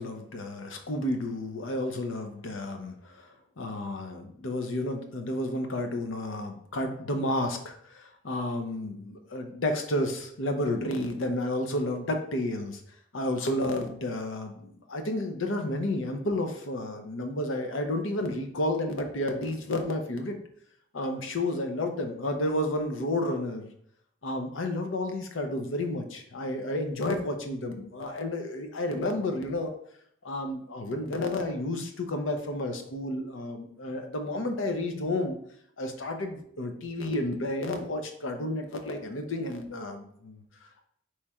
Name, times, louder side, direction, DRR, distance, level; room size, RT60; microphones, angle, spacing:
voice 1, 0.0-12.8 13.1-20.4 20.9-23.7 24.2-29.7 30.2-35.4 35.8-40.8, left 1 dB, 70° left, 5 dB, 0.7 m, -31 dB
4.2 x 3.2 x 3.5 m, 0.67 s
head